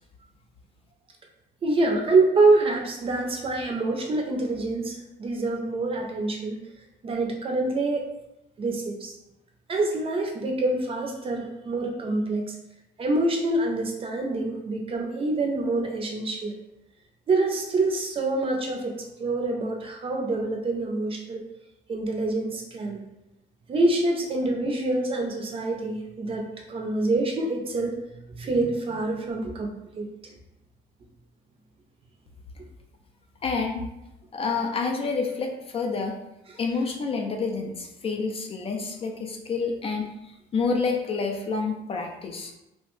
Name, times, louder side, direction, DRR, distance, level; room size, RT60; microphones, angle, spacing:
voice 1, 1.6-6.6 7.0-8.1 8.6-9.1 9.7-12.6 13.0-16.6 17.3-21.4 21.9-23.0 23.7-27.9 28.4-30.1, right 2 dB, 35° right, 2 dB, 0.5 m, -26 dB
voice 2, 33.4-33.9 34.3-36.2 36.6-40.1 40.5-42.5, left 4 dB, 35° left, 2 dB, 0.4 m, -28 dB
2.8 x 2.0 x 3.0 m, 0.89 s
cardioid pair, 110°, 17 cm